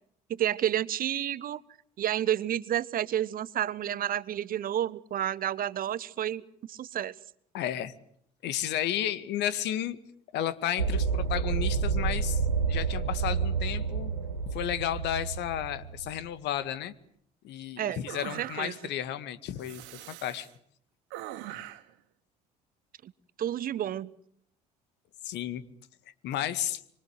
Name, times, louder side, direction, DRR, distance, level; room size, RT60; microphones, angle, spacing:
voice 1, 0.3-1.6 2.0-7.1 17.8-18.0 18.4-18.7 23.0-23.1 23.4-24.1, right 11 dB, 45° right, 20 dB, 1.1 m, -30 dB
voice 2, 7.5-7.9 8.4-10.0 10.3-14.1 14.5-16.9 17.4-19.8 20.1-20.5 25.2-25.6 26.2-26.8, left 11 dB, 55° left, 13 dB, 2.1 m, -32 dB
sound 1, 10.8-16.2, right 5 dB, 90° right, 1.2 m, -29 dB
sound 2, 18.1-19.0 19.6-20.5 21.1-21.9, right 14 dB, 65° right, 2.2 m, -42 dB
27.0 x 25.0 x 8.1 m, 0.70 s
figure-of-eight pair, 60°, 21 cm